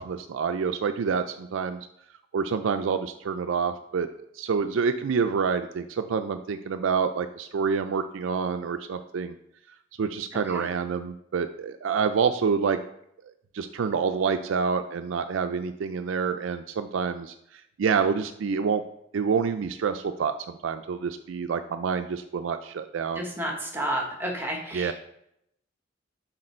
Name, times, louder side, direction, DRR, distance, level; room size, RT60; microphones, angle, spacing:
voice 1, 0.0-1.8 2.3-4.1 4.4-9.3 10.0-12.8 13.5-17.3 17.8-18.8 19.1-23.2 24.7-24.9, right 6 dB, 75° right, 9 dB, 0.4 m, -27 dB
voice 2, 23.2-24.9, right 1 dB, 10° right, 1 dB, 1.1 m, -31 dB
6.5 x 4.4 x 4.3 m, 0.76 s
head